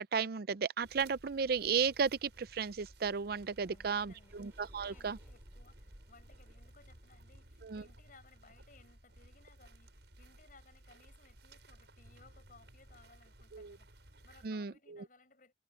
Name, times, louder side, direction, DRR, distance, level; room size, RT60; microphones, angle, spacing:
voice 1, 0.0-5.2 7.6-7.8 13.5-13.8 14.4-15.0, right 6 dB, 55° right, 0.5 m, -34 dB
sound 1, 0.8-14.5, right 1 dB, 75° right, 6.1 m, -57 dB
sound 2, 2.5-9.1, right 1 dB, 10° right, 6.2 m, -71 dB
voice 2, 3.7-4.4 4.7-15.5, left 3 dB, 50° left, 7.0 m, -63 dB
head